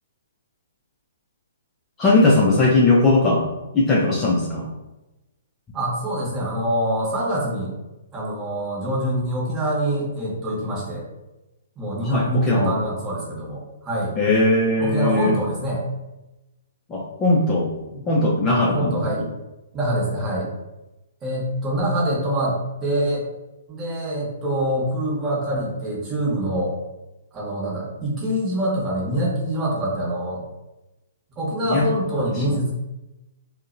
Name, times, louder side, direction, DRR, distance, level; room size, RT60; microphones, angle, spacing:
voice 1, 2.0-3.5 3.7-4.7 12.0-12.7 14.2-15.4 16.9-17.7 18.1-19.2 31.7-31.8 32.5-32.6, left 2 dB, 20° left, -3 dB, 0.4 m, -19 dB
voice 2, 5.7-7.7 8.1-11.0 11.8-14.1 14.8-15.8 17.9-18.0 18.7-19.2 19.7-20.5 21.2-23.2 23.7-26.7 27.3-30.4 31.4-32.7, right 1 dB, 20° right, -5 dB, 1.0 m, -25 dB
2.6 x 2.1 x 2.5 m, 1.0 s
figure-of-eight pair, 125°, 0 cm